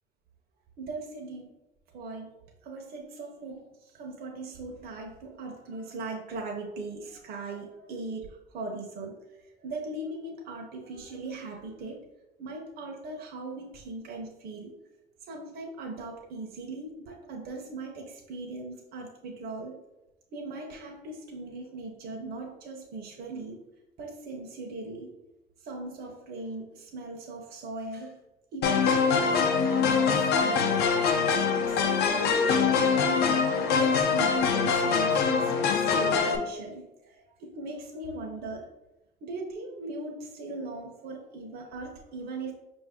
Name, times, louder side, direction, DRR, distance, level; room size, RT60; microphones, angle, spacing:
voice 1, 0.8-1.5 1.9-9.2 9.6-12.1 12.4-14.7 15.3-19.8 20.3-23.6 24.0-25.1 25.6-28.2 28.5-30.7 31.3-38.7 39.2-42.5, right 2 dB, 65° right, 0 dB, 0.8 m, -39 dB
sound 1, 28.6-36.4, left 5 dB, 75° left, 0.6 m, -24 dB
5.3 x 2.6 x 3.5 m, 0.96 s
cardioid pair, 110°, 17 cm